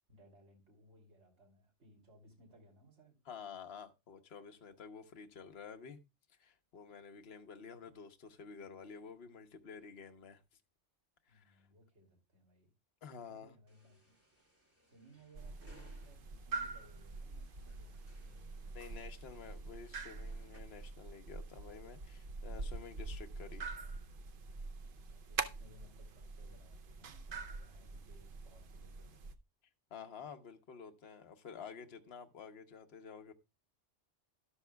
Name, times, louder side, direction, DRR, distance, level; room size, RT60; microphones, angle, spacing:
voice 1, 0.1-3.2 11.3-12.7 13.1-18.8 24.8-29.3, right 1 dB, 70° right, 3.1 m, -63 dB
voice 2, 3.3-6.0 6.3-10.4 11.3-11.7 13.0-13.6 18.7-23.7 29.9-33.3, left 6 dB, 60° left, 1.2 m, -51 dB
sound 1, 13.7-20.6, equal, 10° right, 2.3 m, -68 dB
sound 2, 15.3-29.3, right 4 dB, 55° right, 0.8 m, -45 dB
13.0 x 11.5 x 2.2 m
omnidirectional pair, 1.2 m